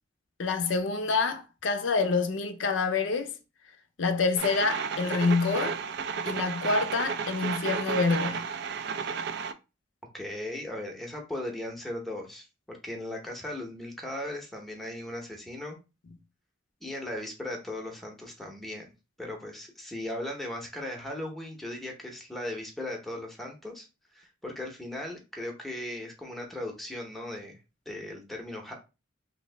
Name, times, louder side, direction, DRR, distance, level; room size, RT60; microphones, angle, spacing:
voice 1, 0.4-3.3 4.0-5.8 6.3-8.5, left 4 dB, 80° left, 0.5 m, -27 dB
sound 1, 4.4-9.5, right 6 dB, 60° right, 0.3 m, -32 dB
voice 2, 10.1-15.8 16.8-18.9 19.2-23.9 24.1-27.6 27.9-28.7, left 1 dB, ahead, 0.7 m, -37 dB
3.1 x 2.6 x 3.2 m
head